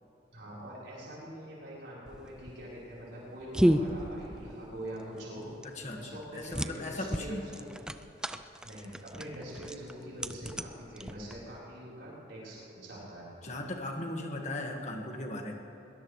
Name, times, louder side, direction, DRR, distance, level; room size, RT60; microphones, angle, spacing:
voice 1, 0.3-5.5 5.9-7.7 8.6-13.3, equal, 85° right, -7 dB, 4.2 m, -44 dB
sound 1, 2.1-11.6, equal, 5° right, 0.4 m, -33 dB
voice 2, 5.6-7.4 13.4-15.6, left 1 dB, 40° left, 2 dB, 1.7 m, -38 dB
22.0 x 19.5 x 3.2 m, 2.8 s
head